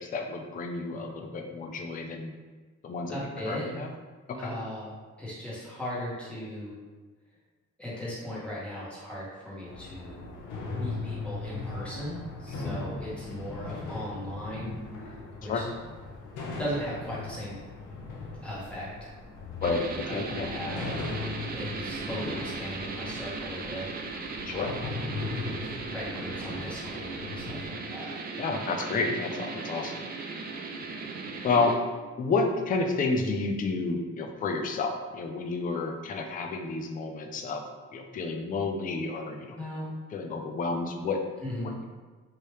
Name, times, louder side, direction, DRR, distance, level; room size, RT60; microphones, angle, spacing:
voice 1, 0.0-2.3 2.8-3.2 3.5-3.9 4.3-4.5 12.5-12.8 15.5-15.6 19.6-20.5 24.5-24.7 28.4-30.0 31.4-31.9 32.2-37.6 37.9-39.6 40.1-41.2, left 3 dB, 30° left, 3 dB, 0.4 m, -30 dB
voice 2, 3.1-3.7 4.4-4.9 5.2-6.8 7.8-10.3 10.8-14.7 15.0-15.1 15.4-15.7 16.6-17.6 18.4-19.1 20.0-20.9 21.5-23.9 24.5-24.9 25.4-28.1 39.5-39.9 41.4-41.7, equal, 5° left, -8 dB, 1.4 m, -38 dB
sound 1, 9.7-27.7, left 3 dB, 85° left, 0.7 m, -38 dB
sound 2, 19.6-31.8, right 4 dB, 30° right, 0.4 m, -37 dB
3.1 x 2.7 x 3.2 m, 1.3 s
cardioid pair, 90°, 30 cm